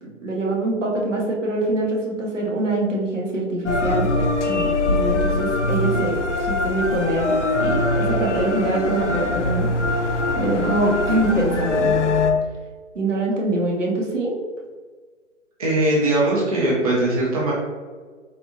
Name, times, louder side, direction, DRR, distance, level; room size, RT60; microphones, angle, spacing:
voice 1, 0.0-4.1 4.5-7.3 7.6-9.7 10.0-11.9 12.9-14.3, right 2 dB, 75° right, -2 dB, 1.0 m, -24 dB
sound 1, 3.7-12.3, left 2 dB, 65° left, 0.5 m, -22 dB
voice 2, 15.6-17.5, right 1 dB, 30° right, -5 dB, 0.6 m, -20 dB
3.6 x 2.6 x 2.5 m, 1.5 s
figure-of-eight pair, 140°, 38 cm